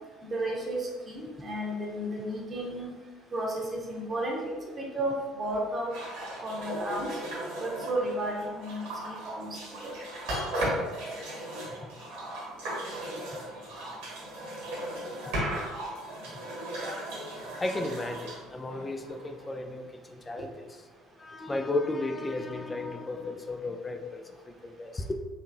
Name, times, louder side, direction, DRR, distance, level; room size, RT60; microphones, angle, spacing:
voice 1, 0.3-2.9 3.3-5.9 6.4-7.1 7.6-9.9, right 1 dB, 30° right, 0.9 m, -33 dB
sound 1, 5.9-19.4, right 1 dB, 65° right, 1.3 m, -36 dB
voice 2, 17.6-20.8 21.2-25.1, left 2 dB, 20° left, 0.4 m, -34 dB
4.2 x 3.0 x 2.5 m
figure-of-eight pair, 55°, 0 cm